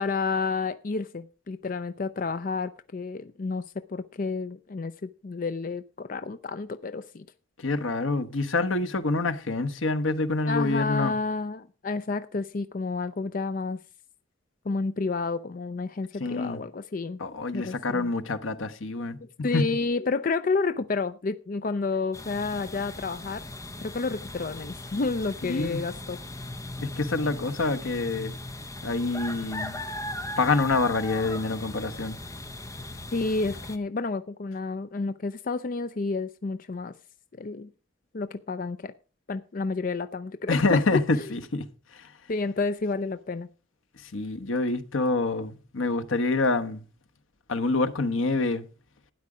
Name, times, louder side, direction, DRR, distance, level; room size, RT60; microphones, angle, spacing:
voice 1, 0.0-7.3 10.5-13.8 14.7-17.2 17.5-18.1 19.4-23.4 23.8-26.2 33.1-36.9 37.3-37.7 38.1-38.9 39.3-41.3 42.3-43.5, left 4 dB, 45° left, 0.5 m, -30 dB
voice 2, 7.6-11.1 16.2-16.6 17.2-19.6 25.4-25.8 26.8-28.4 28.8-29.8 30.4-32.2 40.5-41.7 41.9-42.1 44.0-46.8 47.5-48.6, left 3 dB, 85° left, 1.1 m, -27 dB
sound 1, 22.1-33.8, left 1 dB, 15° left, 0.9 m, -38 dB
12.5 x 9.6 x 4.9 m
head